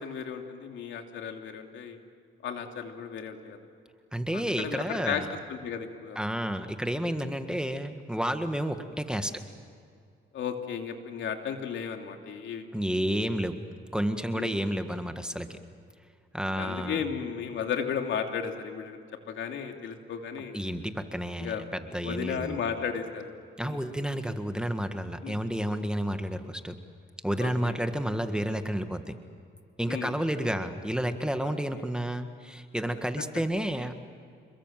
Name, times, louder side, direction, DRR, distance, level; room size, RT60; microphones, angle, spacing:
voice 1, 0.0-2.0 2.4-3.6 4.3-5.2 5.5-6.2 7.5-7.6 10.3-12.7 14.3-14.6 16.6-19.0 19.3-20.6 21.4-21.7 22.0-23.3 23.6-23.8 25.2-25.4 27.4-27.7 29.9-30.1 31.4-31.6, left 7 dB, 70° left, 4 dB, 3.0 m, -34 dB
voice 2, 4.1-5.2 6.1-9.3 12.7-13.6 13.9-15.6 16.3-17.0 20.5-22.6 23.6-26.8 27.2-29.2 29.8-34.0, equal, 5° right, 7 dB, 1.7 m, -31 dB
28.0 x 22.0 x 7.6 m, 2.4 s
cardioid pair, 90°, 20 cm